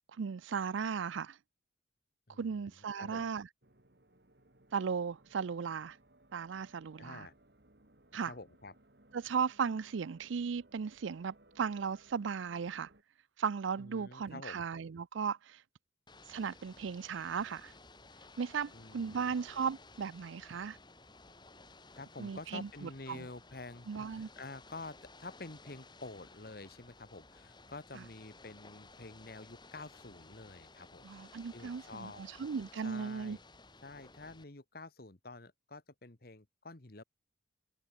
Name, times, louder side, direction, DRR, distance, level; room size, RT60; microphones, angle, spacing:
voice 1, 0.2-1.4 2.4-3.5 4.7-6.0 6.3-7.3 8.1-8.3 9.1-12.9 13.4-15.6 16.3-17.7 18.4-20.8 22.2-23.2 23.9-24.3 31.0-33.4, right 6 dB, 80° right, 0.5 m, -36 dB
voice 2, 2.3-3.3 7.0-7.3 8.2-8.7 13.8-14.6 18.7-19.4 21.9-32.4 32.8-33.4 33.8-37.0, left 2 dB, 50° left, 1.4 m, -49 dB
sound 1, 3.6-13.0, right 1 dB, 55° right, 2.7 m, -64 dB
Ocean / Boat Water vehicle, 16.1-34.4, left 3 dB, 25° left, 4.7 m, -57 dB
head